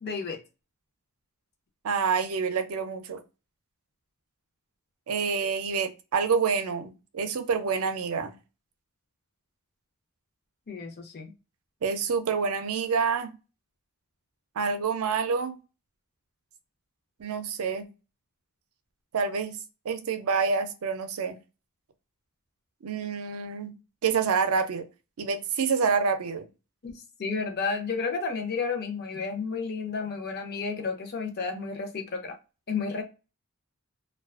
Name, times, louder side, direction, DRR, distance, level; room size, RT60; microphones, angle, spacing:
voice 1, 0.0-0.4 10.7-11.3 26.8-32.4 32.7-33.0, left 4 dB, 45° left, 0.6 m, -32 dB
voice 2, 1.8-3.2 5.1-8.3 11.8-13.3 14.6-15.6 17.2-17.9 19.1-19.6 19.8-21.4 22.8-23.7 24.0-24.9 25.2-26.5, right 5 dB, 70° right, 0.5 m, -27 dB
2.4 x 2.3 x 2.3 m
head